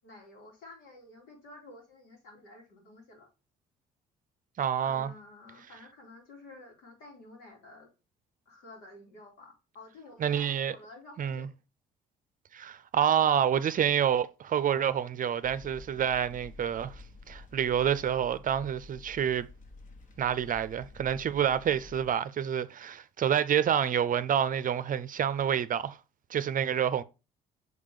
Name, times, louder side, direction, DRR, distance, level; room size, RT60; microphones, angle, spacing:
voice 1, 0.0-3.3 4.8-7.9 8.4-11.5, left 2 dB, 80° left, 3.1 m, -51 dB
voice 2, 4.6-5.1 10.2-10.7 11.2-11.5 12.5-19.5 20.2-26.0 26.3-27.0, right 9 dB, 45° right, 0.6 m, -28 dB
sound 1, 15.4-22.1, left 3 dB, 40° left, 1.4 m, -50 dB
6.3 x 3.6 x 5.1 m
supercardioid pair, 65°, 19 cm